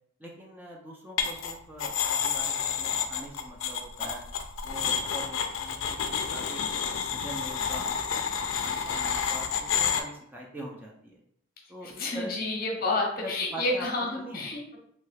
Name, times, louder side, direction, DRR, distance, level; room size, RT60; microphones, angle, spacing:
voice 1, 0.2-4.2 4.6-7.9 8.4-11.2 11.7-12.3 12.9-13.9 14.2-14.5, equal, 10° right, -2 dB, 0.4 m, -43 dB
sound 1, 1.2-1.5 1.8-10.0, left 7 dB, 80° left, 0.4 m, -29 dB
voice 2, 11.8-14.8, left 2 dB, 50° left, 0 dB, 0.7 m, -30 dB
3.0 x 2.3 x 3.2 m, 0.68 s
head